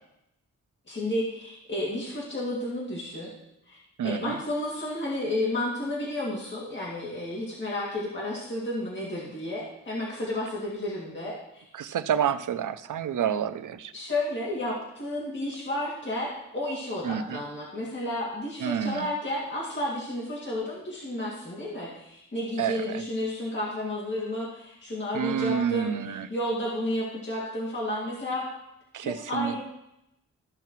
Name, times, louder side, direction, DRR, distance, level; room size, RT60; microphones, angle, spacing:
voice 1, 0.9-3.3 3.7-11.6 13.9-28.5 29.0-29.6, left 1 dB, 40° left, -6 dB, 2.3 m, -32 dB
voice 2, 4.0-4.4 11.7-13.9 17.0-17.4 18.6-19.1 22.6-23.0 25.1-26.3 28.9-29.6, right 8 dB, 80° right, 12 dB, 0.6 m, -29 dB
14.0 x 5.7 x 3.1 m, 0.83 s
wide cardioid pair, 120°, 30 cm